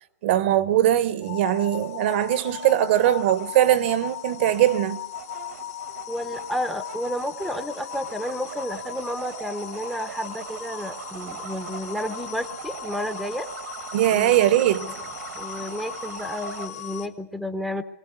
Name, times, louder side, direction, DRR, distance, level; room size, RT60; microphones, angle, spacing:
voice 1, 0.2-5.0 13.9-14.9, right 12 dB, 45° right, 0.9 m, -21 dB
sound 1, 1.2-17.1, left 11 dB, 75° left, 3.3 m, -38 dB
sound 2, 1.7-16.7, right 8 dB, 75° right, 1.5 m, -41 dB
voice 2, 6.1-13.5 14.1-14.4 14.8-14.9 15.3-17.8, left 1 dB, ahead, 0.7 m, -31 dB
23.0 x 16.5 x 9.4 m
hypercardioid pair, 165°, 8 cm